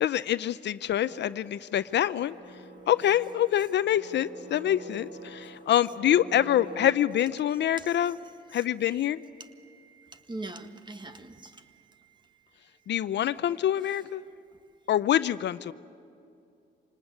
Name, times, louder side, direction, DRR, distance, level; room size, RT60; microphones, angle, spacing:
voice 1, 0.0-2.3 2.9-8.2 8.5-9.2 12.9-14.2 14.9-15.7, left 11 dB, 65° left, 15 dB, 0.6 m, -26 dB
sound 1, 0.9-6.8, right 1 dB, 70° right, 5.4 m, -47 dB
voice 2, 7.5-12.6 13.8-14.0, right 2 dB, 25° right, 8 dB, 1.8 m, -46 dB
26.0 x 19.0 x 9.8 m, 2.6 s
cardioid pair, 90°, 20 cm